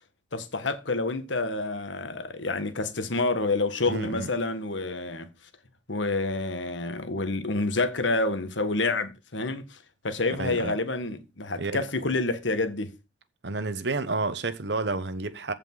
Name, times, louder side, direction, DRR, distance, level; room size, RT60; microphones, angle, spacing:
voice 1, 0.3-5.3 5.9-9.8 10.0-12.9, left 2 dB, 85° left, 1.6 m, -28 dB
voice 2, 3.9-4.3 10.4-10.8 11.6-11.8 13.4-15.5, right 3 dB, 65° right, 1.0 m, -30 dB
15.0 x 5.3 x 3.9 m
head